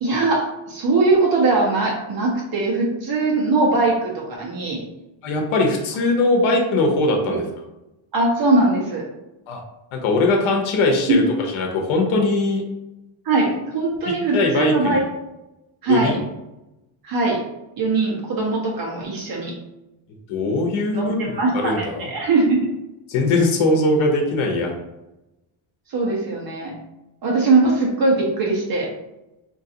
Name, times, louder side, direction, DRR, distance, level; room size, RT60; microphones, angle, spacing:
voice 1, 0.0-4.8 7.3-7.4 8.1-9.1 11.1-11.2 13.2-15.0 15.8-16.2 17.0-17.4 17.8-19.5 20.9-22.6 25.9-26.7 27.2-28.9, right 3 dB, 45° right, -3 dB, 1.2 m, -20 dB
voice 2, 5.2-7.4 9.5-9.6 9.9-11.2 11.5-12.6 14.3-15.0 15.9-16.2 20.3-22.1 23.1-24.7, left 2 dB, 75° left, 2 dB, 0.9 m, -20 dB
3.8 x 3.0 x 2.8 m, 0.95 s
cardioid pair, 155°, 50 cm